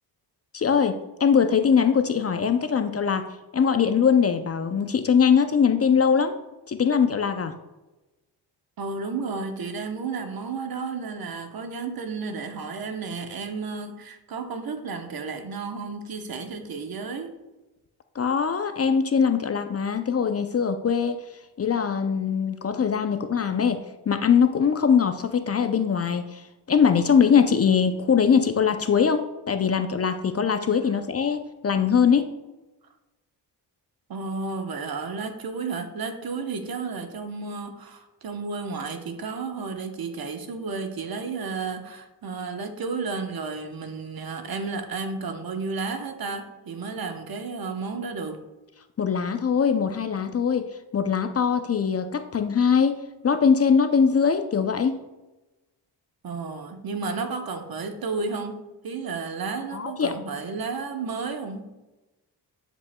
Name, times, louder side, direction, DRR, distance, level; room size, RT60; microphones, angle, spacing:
voice 1, 0.5-3.2 3.5-6.3 6.7-7.5 18.2-21.2 21.6-23.8 24.1-32.3 49.0-50.7 50.9-53.0 53.2-55.0 59.7-60.1, left 6 dB, 35° left, 9 dB, 0.5 m, -22 dB
voice 2, 8.8-17.3 34.1-48.4 56.2-61.7, right 4 dB, 55° right, 7 dB, 1.0 m, -32 dB
10.5 x 5.2 x 2.2 m, 1.1 s
cardioid pair, 70°, 43 cm